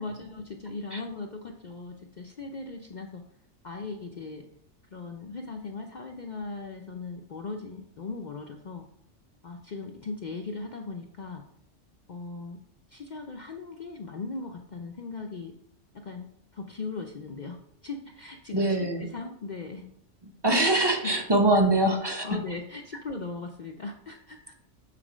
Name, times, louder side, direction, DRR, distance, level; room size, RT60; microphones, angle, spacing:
voice 1, 0.0-3.2 3.6-4.4 4.9-8.8 9.4-11.4 12.1-12.6 12.9-15.5 15.9-16.3 16.5-17.6 17.8-19.8 21.0-21.1 22.0-24.5, left 3 dB, 50° left, 2 dB, 0.6 m, -38 dB
voice 2, 18.5-19.1 20.2-22.4, right 2 dB, 25° right, 2 dB, 0.9 m, -24 dB
7.6 x 4.1 x 5.0 m, 0.75 s
omnidirectional pair, 1.3 m